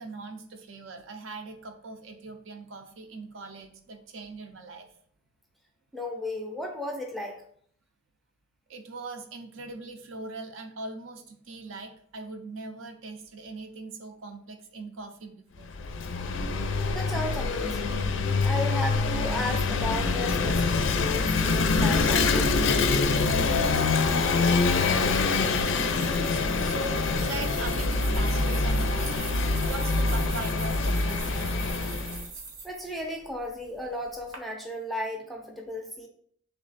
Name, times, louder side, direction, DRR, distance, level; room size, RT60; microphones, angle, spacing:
voice 1, 0.0-4.9 8.7-15.7 25.5-31.5, right 3 dB, 65° right, 5 dB, 0.6 m, -41 dB
voice 2, 5.9-7.4 16.9-18.0 18.4-22.6 32.6-36.1, left 1 dB, ahead, 2 dB, 0.5 m, -34 dB
Vehicle / Engine, 15.6-32.2, left 3 dB, 60° left, 0.4 m, -25 dB
sound 1, 20.1-34.4, right 4 dB, 85° right, 1.0 m, -43 dB
3.4 x 3.2 x 4.0 m, 0.62 s
head